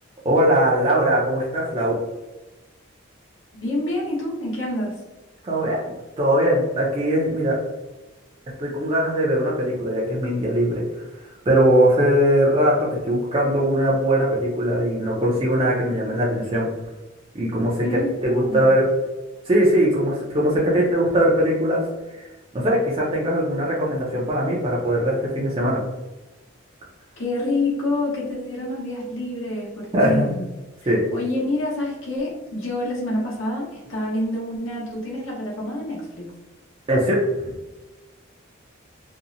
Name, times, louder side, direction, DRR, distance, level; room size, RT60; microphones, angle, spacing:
voice 1, 0.2-2.0 5.4-7.5 8.6-11.0 11.5-16.7 17.3-18.8 19.5-21.8 22.1-22.3 22.5-25.8 29.9-30.3 30.9-31.0 36.9-37.5, right 1 dB, 25° right, -5 dB, 0.4 m, -20 dB
voice 2, 3.5-5.0 17.8-18.8 27.2-30.4 30.8-36.3, left 1 dB, 65° left, -4 dB, 0.9 m, -27 dB
2.7 x 2.0 x 2.5 m, 1.1 s
head